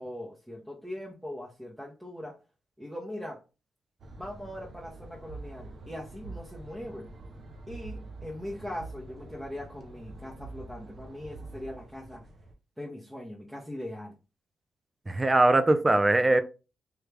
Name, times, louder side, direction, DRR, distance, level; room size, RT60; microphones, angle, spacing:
voice 1, 0.0-2.3 2.8-3.4 4.2-7.1 7.7-12.2 12.8-14.1, left 1 dB, 5° right, 0.8 m, -40 dB
sound 1, 4.0-12.5, right 2 dB, 55° right, 0.7 m, -45 dB
voice 2, 15.1-16.4, right 2 dB, 20° right, 0.4 m, -21 dB
3.3 x 2.3 x 3.3 m
cardioid pair, 75°, 0 cm